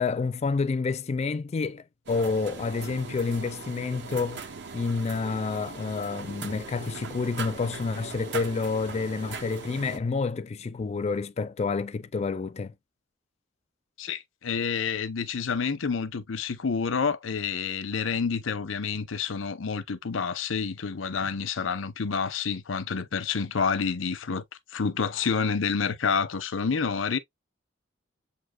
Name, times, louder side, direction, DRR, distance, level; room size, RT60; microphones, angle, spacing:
voice 1, 0.0-4.5 4.7-12.7, left 4 dB, 35° left, 0.3 m, -29 dB
sound 1, 2.1-10.0, right 4 dB, 65° right, 0.7 m, -40 dB
voice 2, 14.0-24.4 24.7-27.2, left 5 dB, 90° left, 0.7 m, -28 dB
7.6 x 2.7 x 2.2 m
head